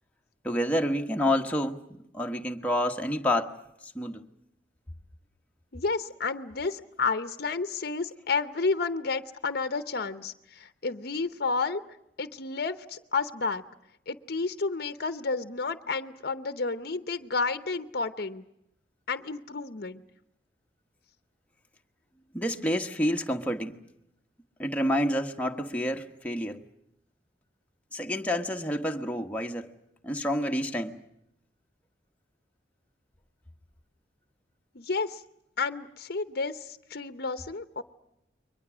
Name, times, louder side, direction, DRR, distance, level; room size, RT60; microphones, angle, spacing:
voice 1, 0.4-1.8 2.1-3.5 3.8-4.3 22.3-23.8 24.6-26.6 27.9-29.7 30.0-31.0, left 1 dB, 10° left, 1.2 m, -28 dB
voice 2, 5.7-11.8 12.2-13.6 14.1-18.4 19.1-20.0 34.7-35.2 35.6-37.8, left 4 dB, 55° left, 0.8 m, -31 dB
30.0 x 22.5 x 6.2 m
head